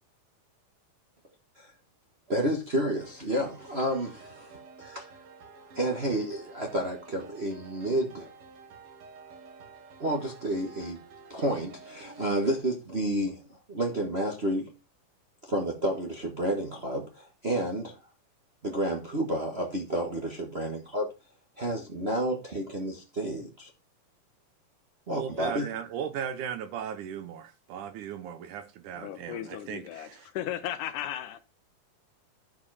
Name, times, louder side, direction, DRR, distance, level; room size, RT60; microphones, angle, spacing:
voice 1, 2.3-5.1 5.7-8.3 10.0-11.0 11.3-14.7 15.4-18.0 18.6-21.1 21.6-23.7 25.1-25.7, right 1 dB, 90° right, 0.5 m, -30 dB
sound 1, 3.0-12.6, right 4 dB, 55° right, 1.8 m, -51 dB
voice 2, 25.1-30.3, right 8 dB, 75° right, 2.2 m, -37 dB
voice 3, 29.0-31.4, left 11 dB, 75° left, 2.2 m, -36 dB
12.0 x 5.1 x 4.8 m
omnidirectional pair, 3.9 m